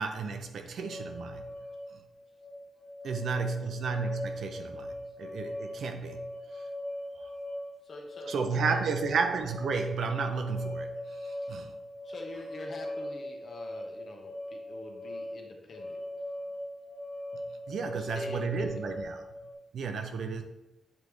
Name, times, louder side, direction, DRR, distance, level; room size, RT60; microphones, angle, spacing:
voice 1, 0.0-1.5 3.0-6.6 7.2-7.3 8.3-11.7 17.3-17.4 17.7-19.2 19.7-20.4, right 4 dB, 65° right, 6 dB, 0.7 m, -33 dB
sound 1, 0.8-19.5, left 1 dB, 65° left, 1.7 m, -40 dB
voice 2, 3.1-3.6 7.8-8.8 11.4-11.6 12.0-16.3 17.9-18.8, left 2 dB, 45° left, 2 dB, 1.0 m, -46 dB
8.2 x 3.6 x 3.2 m, 0.94 s
wide cardioid pair, 140°, 0 cm